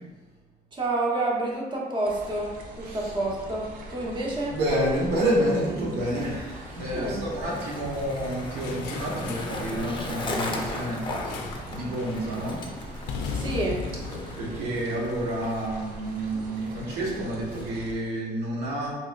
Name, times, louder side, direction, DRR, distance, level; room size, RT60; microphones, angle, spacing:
voice 1, 0.7-4.6 6.9-7.2 13.3-13.8, right 2 dB, 30° right, -3 dB, 0.9 m, -29 dB
sound 1, 2.0-18.0, right 1 dB, 55° right, 0.7 m, -42 dB
voice 2, 4.5-11.4 11.7-12.6 14.4-18.9, right 1 dB, 80° right, -4 dB, 1.2 m, -29 dB
Skateboard, 5.4-18.1, left 2 dB, 30° left, 0.5 m, -38 dB
sound 2, 8.6-9.6 11.3-11.7 12.0-12.3 13.1-15.4, left 5 dB, 90° left, 0.4 m, -36 dB
4.1 x 2.9 x 2.4 m, 1.3 s
cardioid pair, 110°, 17 cm